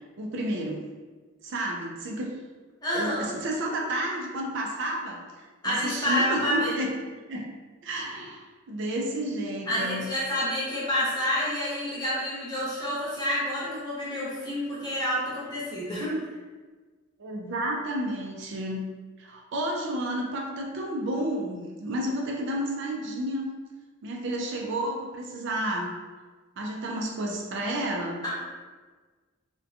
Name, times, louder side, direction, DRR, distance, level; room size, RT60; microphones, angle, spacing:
voice 1, 0.2-0.9 1.4-2.3 2.9-5.2 5.6-6.9 7.3-7.5 7.8-10.0 17.2-18.8 19.2-23.5 24.0-25.9 26.6-28.3, right 1 dB, 60° right, 0 dB, 0.4 m, -31 dB
voice 2, 2.8-3.3 5.6-6.7 9.7-16.1 28.2-28.3, equal, 20° left, -8 dB, 0.8 m, -28 dB
2.5 x 2.2 x 2.6 m, 1.4 s
head